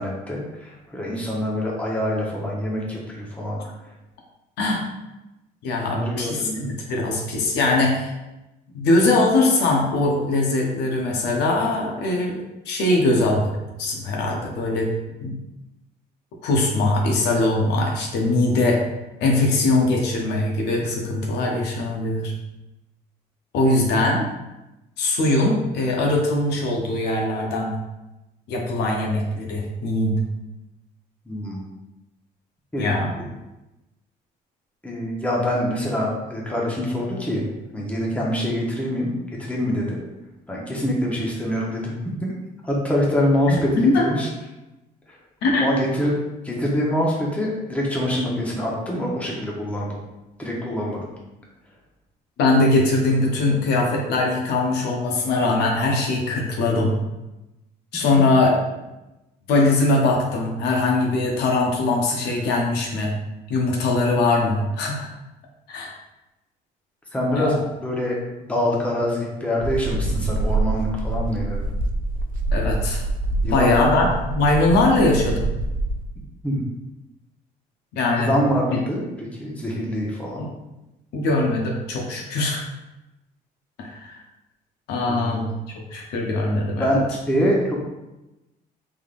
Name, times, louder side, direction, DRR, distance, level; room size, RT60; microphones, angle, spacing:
voice 1, 0.0-3.6 5.8-6.7 31.3-31.6 32.7-32.9 33.1-33.2 34.8-37.4 37.7-39.1 39.4-40.0 40.5-42.3 42.6-44.3 45.1-45.2 45.6-46.2 46.4-50.0 50.4-51.1 67.1-71.6 73.4-74.1 76.4-76.6 78.1-80.4 85.1-85.5 86.8-87.8, equal, 10° left, -4 dB, 0.9 m, -25 dB
voice 2, 5.6-6.5 6.9-8.1 8.7-14.9 15.2-15.3 16.4-18.8 19.2-22.3 23.5-24.3 25.0-27.7 28.5-30.2 32.8-33.1 43.5-44.1 45.4-45.7 52.4-57.0 57.9-58.5 59.5-63.1 63.5-65.1 65.7-65.9 67.3-67.6 72.5-73.0 73.5-74.1 74.4-75.5 77.9-78.3 80.4-80.5 81.1-82.6 83.8-84.2 84.9-85.5 85.9-87.0, left 2 dB, 80° left, 0 dB, 0.8 m, -21 dB
sound 1, 69.6-76.0, right 2 dB, 55° right, 0.4 m, -25 dB
3.5 x 3.4 x 2.5 m, 0.98 s
cardioid pair, 110°, 17 cm